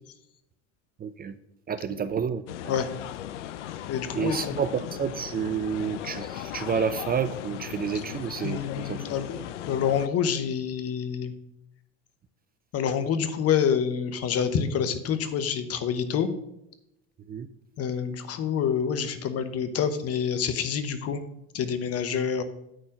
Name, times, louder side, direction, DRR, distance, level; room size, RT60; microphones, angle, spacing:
voice 1, 1.0-1.3 1.7-2.7 4.1-9.2 17.3-17.5, right 7 dB, 25° right, 12 dB, 0.5 m, -30 dB
sound 1, 2.5-10.1, left 12 dB, 85° left, 0.5 m, -37 dB
voice 2, 3.9-4.6 8.4-9.4 9.7-11.3 12.7-16.3 17.8-21.3 21.5-22.4, left 7 dB, 45° left, 11 dB, 1.1 m, -27 dB
9.0 x 4.4 x 6.3 m, 0.83 s
hypercardioid pair, 80°, 35 cm